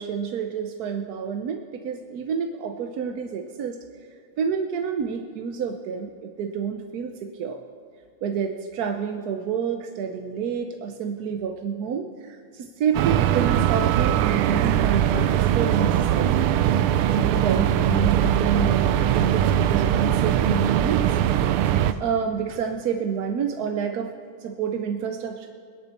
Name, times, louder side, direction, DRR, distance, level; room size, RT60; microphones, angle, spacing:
voice 1, 0.0-3.8 4.4-7.6 8.2-16.5 17.1-21.2 22.0-24.1 24.4-25.5, right 7 dB, 65° right, 4 dB, 1.0 m, -28 dB
sound 1, 12.9-21.9, right 10 dB, 85° right, 1.5 m, -21 dB
21.5 x 10.0 x 4.3 m, 2.2 s
omnidirectional pair, 2.3 m